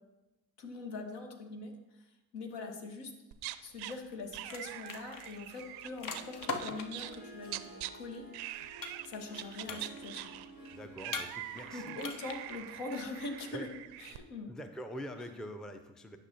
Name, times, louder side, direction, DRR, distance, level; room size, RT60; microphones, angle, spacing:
voice 1, 0.6-3.1 3.6-7.7 7.9-8.3 9.0-10.2 11.7-13.7 14.0-14.5, left 3 dB, 65° left, 4 dB, 1.2 m, -42 dB
sound 1, 3.3-3.9 4.3-7.9 8.3-9.1 9.3-14.2, right 15 dB, 60° right, 0.5 m, -44 dB
sound 2, 3.9-4.1 4.4-7.1 8.8-9.4 9.6-10.2 11.1-11.7 12.0-12.5, left 4 dB, 50° left, 0.9 m, -40 dB
Harp, 5.5-14.2, right 2 dB, 85° left, 2.5 m, -54 dB
voice 2, 10.7-12.0 13.5-13.7 14.5-16.2, equal, ahead, 8 dB, 0.5 m, -45 dB
9.7 x 5.9 x 2.8 m, 1.0 s
figure-of-eight pair, 45°, 45 cm